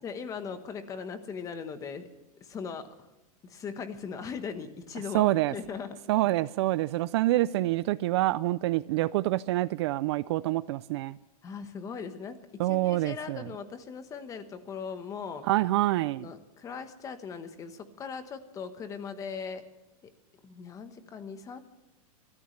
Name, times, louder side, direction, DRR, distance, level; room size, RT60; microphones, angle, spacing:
voice 1, 0.0-2.0 2.4-2.9 3.4-6.0 11.4-15.4 16.2-19.6 20.0-20.1 20.4-21.6, left 6 dB, 15° left, 1.1 m, -39 dB
voice 2, 5.1-5.5 6.1-11.2 12.6-13.5 15.4-16.3, right 17 dB, 45° right, 0.4 m, -26 dB
25.0 x 13.5 x 3.2 m
supercardioid pair, 165°, 19 cm